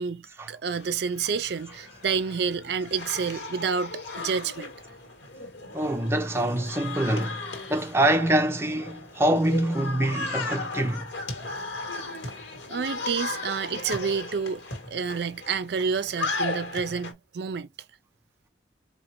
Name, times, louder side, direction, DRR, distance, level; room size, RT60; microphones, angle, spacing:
voice 1, 0.0-4.7 12.7-14.6 14.9-17.7, right 6 dB, 60° right, 0.4 m, -29 dB
sound 1, 0.7-17.1, left 3 dB, 85° left, 1.7 m, -36 dB
voice 2, 5.7-11.1, right 1 dB, 15° right, 0.6 m, -25 dB
4.2 x 2.8 x 2.9 m
head